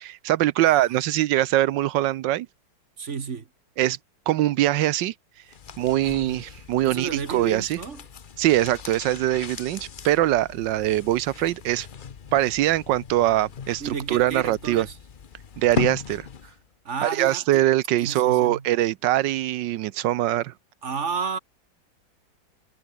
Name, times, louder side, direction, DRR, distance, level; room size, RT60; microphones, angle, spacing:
voice 1, 0.0-2.5 3.8-4.0 4.3-5.1 5.8-7.8 8.4-11.9 12.3-14.9 15.6-16.3 17.0-20.5, right 14 dB, 75° right, 1.3 m, -22 dB
voice 2, 3.0-3.5 6.8-8.0 13.8-15.0 16.8-17.6 18.0-18.7 20.8-21.4, right 5 dB, 40° right, 1.6 m, -32 dB
sound 1, 5.4-16.7 16.9-17.0, left 7 dB, 50° left, 0.6 m, -38 dB
omnidirectional pair, 2.1 m